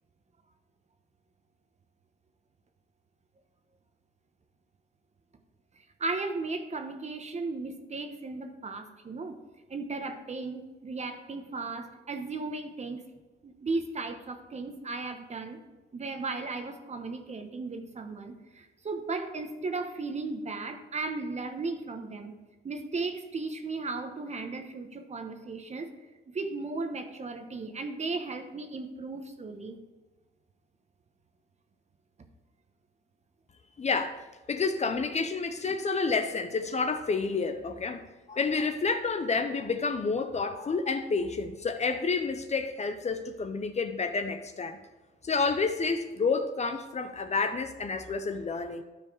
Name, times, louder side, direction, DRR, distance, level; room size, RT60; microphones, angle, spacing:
voice 1, 6.0-9.4 9.7-13.0 13.4-15.6 15.9-22.3 22.6-25.9 26.3-29.8 35.2-35.3 35.7-35.8, right 3 dB, 35° right, 7 dB, 1.1 m, -36 dB
voice 2, 33.8-38.0 38.3-44.8 45.2-48.8, left 4 dB, 35° left, 8 dB, 0.7 m, -29 dB
12.5 x 4.6 x 4.8 m, 1.2 s
cardioid pair, 90°, 20 cm